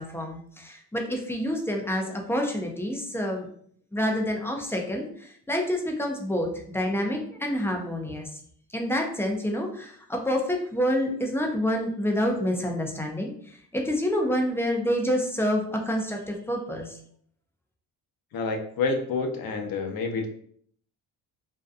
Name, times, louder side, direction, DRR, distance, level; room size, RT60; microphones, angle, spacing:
voice 1, 0.0-3.5 3.9-5.1 5.5-8.3 8.7-13.3 13.7-16.9, equal, 5° left, 1 dB, 0.3 m, -27 dB
voice 2, 18.3-20.3, left 4 dB, 50° left, 4 dB, 0.6 m, -28 dB
2.6 x 2.2 x 2.4 m, 0.62 s
cardioid pair, 85°, 45 cm